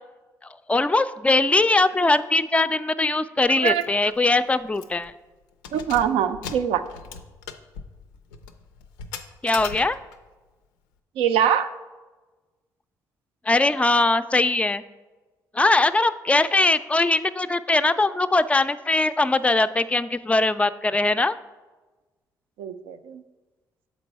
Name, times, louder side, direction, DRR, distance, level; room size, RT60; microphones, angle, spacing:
voice 1, 0.7-5.1 9.4-10.0 13.5-14.8 15.5-21.4, left 2 dB, 15° left, 12 dB, 0.3 m, -21 dB
Keys jangling, 3.6-3.8 4.2-4.3 4.7-5.1 5.5-10.3, left 6 dB, 85° left, 0.4 m, -39 dB
voice 2, 3.6-3.9 5.7-6.8 11.2-11.7 22.6-23.2, right 9 dB, 75° right, 10 dB, 0.4 m, -23 dB
7.0 x 4.4 x 4.2 m, 1.2 s
hypercardioid pair, 45°, 10 cm